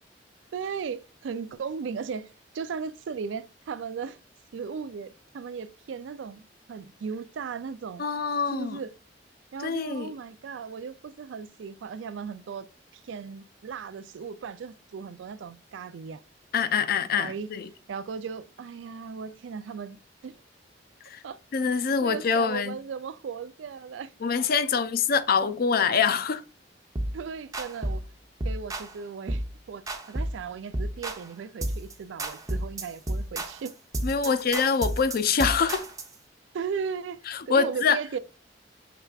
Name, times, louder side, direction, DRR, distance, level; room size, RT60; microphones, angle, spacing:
voice 1, 0.5-4.2 4.5-8.0 8.5-8.9 9.5-12.7 12.9-16.2 17.2-17.5 17.9-20.4 21.2-21.4 22.0-24.1 27.1-28.1 28.4-33.7 34.2-34.4 36.5-38.2, right 6 dB, 85° right, 0.4 m, -36 dB
voice 2, 8.0-8.8 9.6-10.1 16.5-17.7 21.1-21.2 21.5-22.7 24.2-26.4 34.0-35.8 37.3-38.0, left 5 dB, 55° left, 0.4 m, -25 dB
sound 1, 26.9-27.2 27.5-28.0 28.4-28.9 29.3-29.5 29.9-30.4 30.7-31.3 31.6-31.9 32.2-36.1, right 1 dB, 20° right, 0.7 m, -31 dB
5.9 x 3.3 x 2.3 m
head